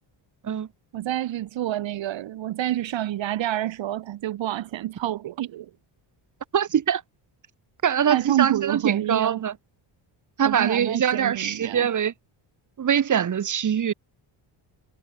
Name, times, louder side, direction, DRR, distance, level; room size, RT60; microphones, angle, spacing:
voice 1, 0.9-5.7 8.1-9.4 10.4-11.9, right 13 dB, 70° right, 1.9 m, -28 dB
voice 2, 6.5-7.0 7.8-9.5 10.4-12.1 12.8-13.9, right 8 dB, 40° right, 2.5 m, -23 dB
cardioid pair, 180°, 47 cm